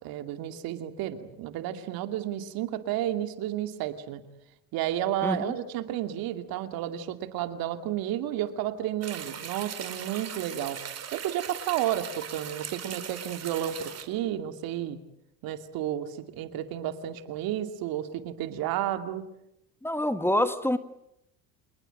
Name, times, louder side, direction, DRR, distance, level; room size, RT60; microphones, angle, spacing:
voice 1, 0.0-4.2 4.7-10.8 11.1-15.0 15.4-19.2, right 12 dB, 65° right, 9 dB, 2.6 m, -32 dB
voice 2, 5.2-5.5 19.8-20.8, left 1 dB, 5° left, 11 dB, 1.5 m, -26 dB
sound 1, 9.0-14.0, right 8 dB, 40° right, 4.3 m, -39 dB
28.0 x 19.5 x 9.1 m, 0.83 s
supercardioid pair, 85°, 38 cm